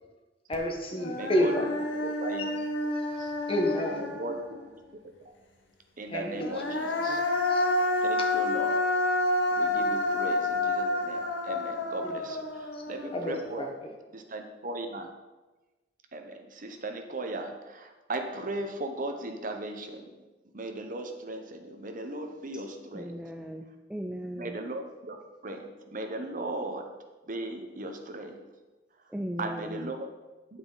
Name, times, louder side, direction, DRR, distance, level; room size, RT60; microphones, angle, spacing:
Human voice, 0.5-0.6 1.0-4.6 6.3-13.6, left 2 dB, 85° left, 1.2 m, -29 dB
voice 1, 0.5-1.6 2.4-2.5 2.9-4.2 6.1-6.8 7.1-7.7 9.7-9.8 12.0-12.1 12.7-12.8 13.1-13.9, equal, 30° left, 2 dB, 1.3 m, -31 dB
voice 2, 1.2-1.5 2.0-2.5 3.2-3.3 4.0-4.6 5.2-5.3 6.0-7.2 8.0-8.8 9.6-13.6 14.1-15.1 16.1-20.1 20.5-23.1 24.3-25.2 25.4-26.9 27.3-28.4 29.4-30.0, right 2 dB, 45° right, 5 dB, 1.0 m, -37 dB
voice 3, 22.9-24.6 29.1-29.9, equal, 5° right, 4 dB, 0.5 m, -37 dB
9.4 x 8.6 x 4.0 m, 1.2 s
head